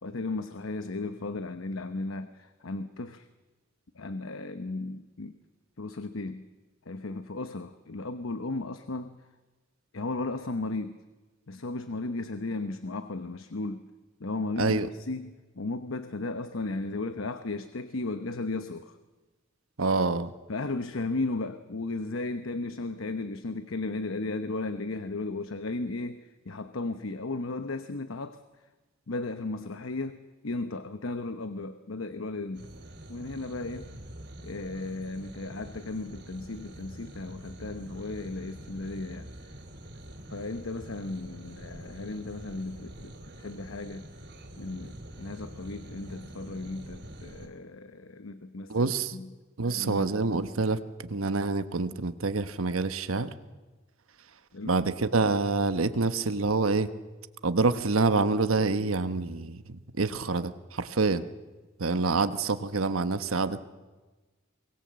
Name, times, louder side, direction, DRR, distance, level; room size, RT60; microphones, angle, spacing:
voice 1, 0.0-3.3 3.9-5.4 5.8-6.4 6.9-9.2 9.9-11.0 11.5-13.9 14.2-19.0 20.5-28.4 29.1-30.2 30.4-32.7 33.1-33.9 34.4-39.3 40.3-44.1 44.6-49.3 49.7-50.1 54.5-54.7, left 2 dB, 75° left, 10 dB, 1.0 m, -35 dB
voice 2, 19.8-20.3 48.7-49.1 49.6-53.3 54.6-56.9 57.4-61.2 61.8-63.6, right 3 dB, 90° right, 11 dB, 1.1 m, -27 dB
sound 1, 32.5-47.5, right 1 dB, 55° right, 3.4 m, -45 dB
23.5 x 20.0 x 7.6 m, 1.2 s
head